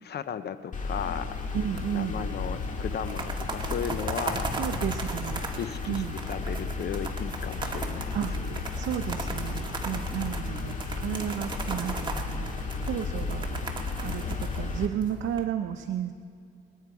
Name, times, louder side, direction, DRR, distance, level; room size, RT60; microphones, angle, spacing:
voice 1, 0.0-1.3 1.9-4.5 5.6-8.6, left 8 dB, 55° left, 12 dB, 0.7 m, -35 dB
sound 1, 0.7-14.9, left 4 dB, 40° left, 2.0 m, -34 dB
voice 2, 1.5-2.2 4.6-5.4 5.9-6.1 8.1-8.3 8.7-13.6 14.0-14.2 14.6-16.1, right 9 dB, 70° right, 6 dB, 0.7 m, -32 dB
sound 2, 1.8-2.5 2.9-15.4, right 3 dB, 25° right, 1.8 m, -37 dB
26.0 x 9.4 x 4.8 m, 2.3 s
cardioid pair, 90°, 20 cm